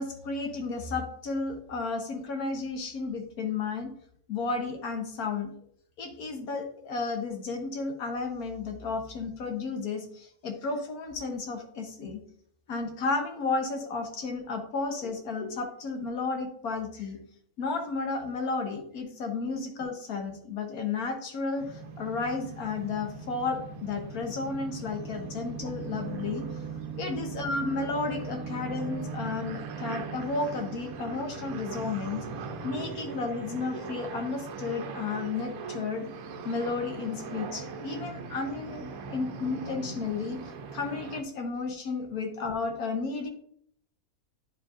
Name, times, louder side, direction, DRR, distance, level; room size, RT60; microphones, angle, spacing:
voice 1, 0.0-3.9 4.3-5.5 6.0-12.2 12.7-17.2 17.6-26.6 27.0-32.3 32.6-36.1 36.4-40.4 40.7-43.3, left 4 dB, 80° left, 4 dB, 1.4 m, -33 dB
sound 1, 21.6-41.2, right 4 dB, 75° right, 1.1 m, -39 dB
9.7 x 5.0 x 2.4 m, 0.65 s
omnidirectional pair, 1.6 m